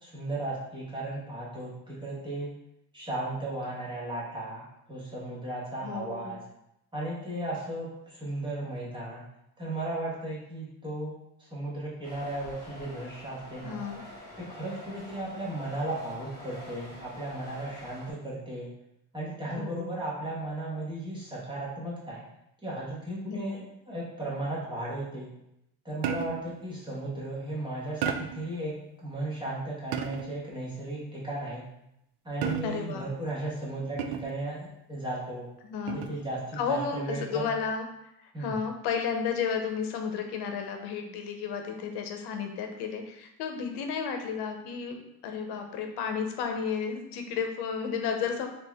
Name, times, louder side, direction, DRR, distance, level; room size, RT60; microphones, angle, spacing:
voice 1, 0.0-2.5 2.9-6.4 6.9-9.2 9.6-13.8 14.4-18.7 19.1-22.2 22.6-25.3 25.8-28.7 29.0-31.6 32.2-35.4 35.9-37.4 38.3-38.6, right 1 dB, 10° right, -7 dB, 1.2 m, -35 dB
voice 2, 5.8-6.3 13.6-14.0 19.5-20.0 23.3-23.6 32.6-33.0 35.6-36.1 36.5-37.8 38.2-48.5, left 6 dB, 90° left, 5 dB, 0.7 m, -32 dB
sound 1, 12.0-18.1, left 1 dB, 10° left, 1.4 m, -47 dB
sound 2, 26.0-26.6 28.0-28.5 29.9-30.4 32.4-33.0 34.0-34.5 35.9-36.3, right 8 dB, 90° right, 0.5 m, -33 dB
4.4 x 2.8 x 3.4 m, 0.82 s
cardioid pair, 165°, 39 cm